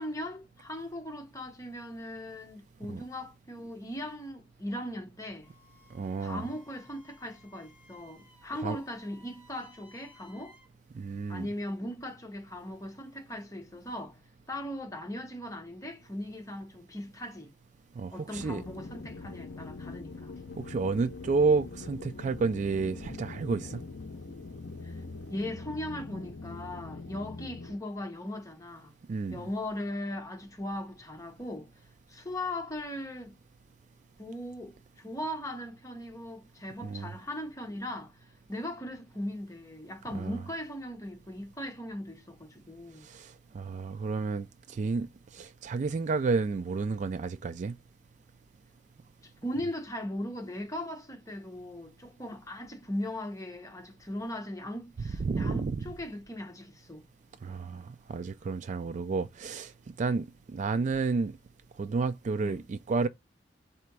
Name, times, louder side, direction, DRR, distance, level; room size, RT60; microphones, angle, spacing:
voice 1, 0.0-5.5 6.2-10.6 11.3-14.2 14.5-17.5 18.1-20.3 24.8-25.0 25.3-28.9 29.3-31.8 32.1-33.4 34.2-43.1 49.2-57.1 62.4-62.6, left 1 dB, 20° left, 0.9 m, -39 dB
Wind instrument woodwind instrument, 5.4-10.7, left 2 dB, 10° right, 2.3 m, -59 dB
voice 2, 5.9-6.4 8.6-8.8 10.9-11.5 18.0-18.6 20.6-23.8 29.1-29.4 36.8-37.1 40.1-40.4 43.0-47.8 55.2-55.8 57.4-61.3 61.8-63.1, right 4 dB, 40° right, 0.3 m, -31 dB
sound 1, 18.3-27.8, left 3 dB, 65° left, 0.6 m, -43 dB
4.2 x 2.8 x 4.6 m
head